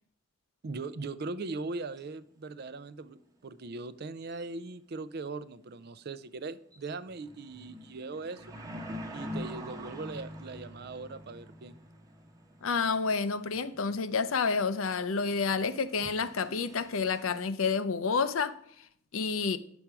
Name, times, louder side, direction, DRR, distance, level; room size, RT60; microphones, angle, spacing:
voice 1, 0.6-3.2 3.4-8.6 9.1-11.8, right 3 dB, 50° right, 0.5 m, -40 dB
sound 1, 1.6-1.7 2.0-2.1 4.2-4.6 4.9-5.0 5.5-5.8 6.3-6.4 6.6-17.5, equal, 15° right, 1.1 m, -46 dB
voice 2, 12.6-18.6 19.1-19.6, left 5 dB, 80° left, 0.7 m, -29 dB
10.0 x 7.1 x 4.7 m
head